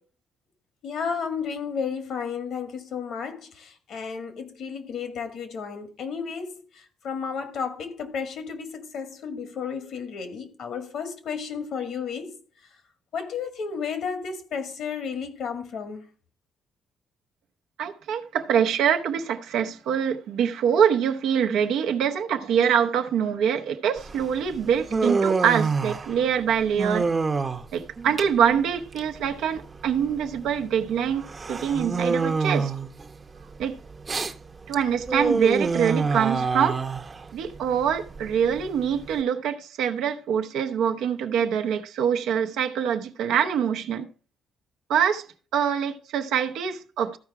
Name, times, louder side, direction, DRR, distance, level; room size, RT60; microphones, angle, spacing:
voice 1, 0.8-12.4 13.1-16.0, left 6 dB, 75° left, 2.0 m, -33 dB
voice 2, 17.8-27.1 27.7-32.7 33.6-33.8 34.7-36.8 37.3-44.1 44.9-45.2 45.5-47.2, right 8 dB, 85° right, 0.8 m, -24 dB
Human voice, 24.0-39.2, right 4 dB, 30° right, 0.8 m, -28 dB
13.5 x 4.7 x 4.8 m
cardioid pair, 90°, 0 cm